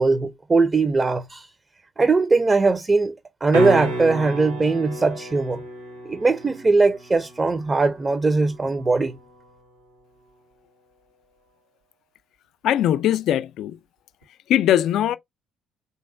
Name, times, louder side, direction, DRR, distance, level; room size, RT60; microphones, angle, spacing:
voice 1, 0.0-1.5 2.0-3.1 3.4-5.6 6.1-9.2, right 3 dB, 25° right, 0.5 m, -20 dB
sound 1, 3.5-9.5 14.2-14.3, right 1 dB, 85° right, 1.5 m, -31 dB
voice 2, 12.6-13.8 14.5-15.2, left 11 dB, 60° left, 0.3 m, -20 dB
3.6 x 2.9 x 3.5 m
figure-of-eight pair, 45°, 0 cm